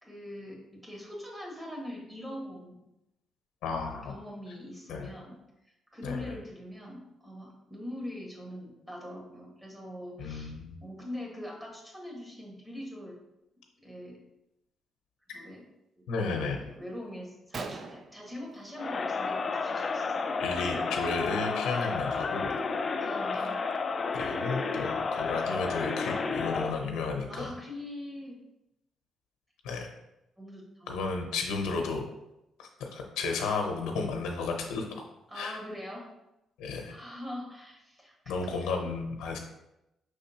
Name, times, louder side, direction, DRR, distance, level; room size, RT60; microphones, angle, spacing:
voice 1, 0.0-2.8 4.0-5.4 5.9-10.5 10.8-13.2 13.8-14.2 15.3-15.6 16.0-16.1 16.4-20.3 23.0-23.5 27.3-28.4 30.4-31.0 35.3-36.1 36.9-38.9, left 1 dB, 10° right, -1 dB, 1.5 m, -42 dB
voice 2, 3.6-4.1 4.9-5.1 6.0-6.3 10.2-10.7 16.1-16.6 20.4-22.5 23.3-23.5 24.1-27.5 29.6-29.9 30.9-32.0 32.6-35.0 35.3-35.6 36.6-36.9 38.3-39.4, left 4 dB, 90° left, 3 dB, 0.8 m, -33 dB
Gunshot gunfire, 16.8-16.9 17.3-17.4 17.5-19.1 19.5-19.8 20.1-20.3 21.1-21.3 21.8-21.9 22.4-23.9, right 4 dB, 45° right, 0.4 m, -44 dB
Crowd, 18.8-26.9, left 4 dB, 40° left, 0.3 m, -31 dB
5.3 x 3.6 x 2.8 m, 0.89 s
cardioid pair, 90°, 0 cm